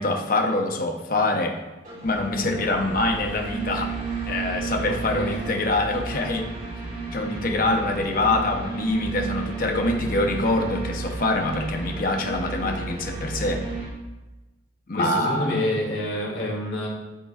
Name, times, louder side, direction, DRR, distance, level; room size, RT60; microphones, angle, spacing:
voice 1, 0.0-1.6 2.0-4.0 4.3-6.5 7.1-13.6 14.9-15.7, left 2 dB, 50° left, 3 dB, 0.9 m, -25 dB
sound 1, 1.8-13.9, right 4 dB, 45° right, 3.0 m, -32 dB
voice 2, 4.8-5.4 14.9-16.9, left 1 dB, 70° left, -3 dB, 2.4 m, -28 dB
12.5 x 6.7 x 2.5 m, 1.1 s
head